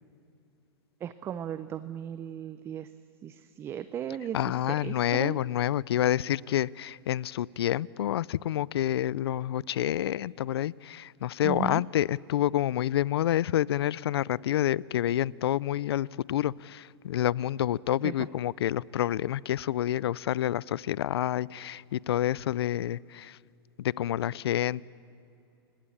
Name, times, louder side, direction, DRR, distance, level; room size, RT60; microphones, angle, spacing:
voice 1, 1.0-2.9 3.2-4.4 4.8-5.4 11.4-11.8 18.0-18.3, right 10 dB, 20° right, 13 dB, 0.6 m, -36 dB
voice 2, 4.3-23.4 23.8-24.8, left 12 dB, 75° left, 24 dB, 0.5 m, -28 dB
29.5 x 16.5 x 8.6 m, 2.7 s
hypercardioid pair, 145°, 13 cm